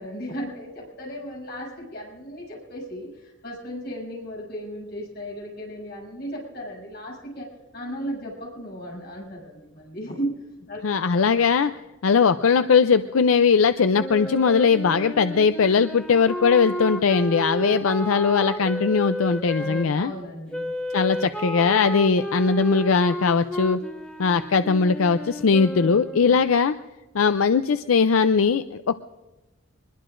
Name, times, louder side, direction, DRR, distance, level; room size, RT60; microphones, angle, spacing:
voice 1, 0.0-7.5 7.7-10.4 10.7-10.8 17.5-17.8 19.6-20.7 21.2-21.3 26.3-26.4, equal, 50° left, -3 dB, 7.8 m, -35 dB
voice 2, 10.8-11.7 12.0-20.1 20.9-23.8 24.2-26.7 27.1-29.0, left 5 dB, 85° left, 10 dB, 0.5 m, -20 dB
Wind instrument woodwind instrument, 13.9-19.9 20.5-26.4, equal, 5° left, 1.2 m, -32 dB
24.5 x 21.5 x 2.6 m, 1.1 s
head